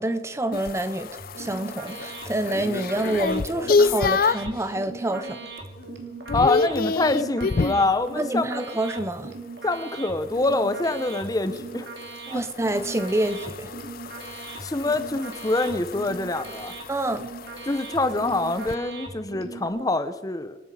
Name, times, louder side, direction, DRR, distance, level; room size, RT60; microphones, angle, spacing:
voice 1, 0.0-5.4 8.2-9.3 12.3-13.7 16.9-17.3, right 1 dB, 15° right, 11 dB, 0.6 m, -27 dB
sound 1, 0.5-4.6 5.1-5.5 5.8-7.9 10.4-18.8, left 4 dB, 50° left, 0.5 m, -28 dB
sound 2, 1.2-19.7, right 3 dB, 65° right, 2.7 m, -40 dB
voice 2, 6.3-8.7 9.6-11.9 12.3-12.4 14.6-16.7 17.7-20.6, left 2 dB, 20° left, 11 dB, 0.8 m, -25 dB
26.5 x 9.7 x 4.9 m, 1.2 s
head